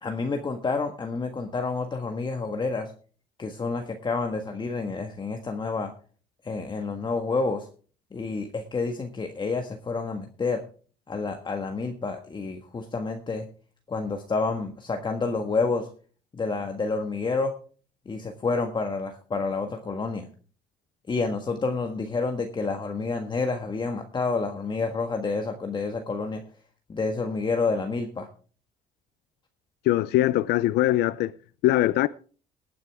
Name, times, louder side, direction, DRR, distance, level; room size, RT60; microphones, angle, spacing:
voice 1, 0.0-2.9 3.4-5.9 6.4-7.7 8.1-10.6 11.1-13.5 13.9-15.9 16.3-17.5 18.0-20.3 21.1-26.4 26.9-28.3, left 4 dB, 25° left, 1.5 m, -29 dB
voice 2, 29.9-31.3 31.6-32.1, left 15 dB, 75° left, 0.5 m, -22 dB
19.0 x 9.5 x 3.5 m
cardioid pair, 110°, 17 cm